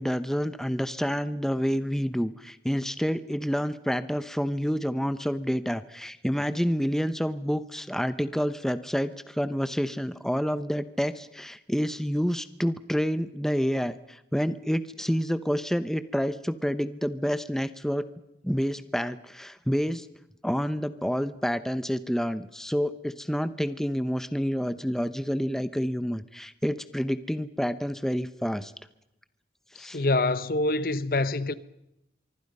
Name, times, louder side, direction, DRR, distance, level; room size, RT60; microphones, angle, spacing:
voice 1, 0.0-18.1 18.4-20.1 20.4-28.7 29.7-30.0, equal, 5° left, 0.7 m, -28 dB
voice 2, 29.8-31.5, left 2 dB, 55° left, 0.8 m, -26 dB
25.0 x 24.0 x 5.4 m
head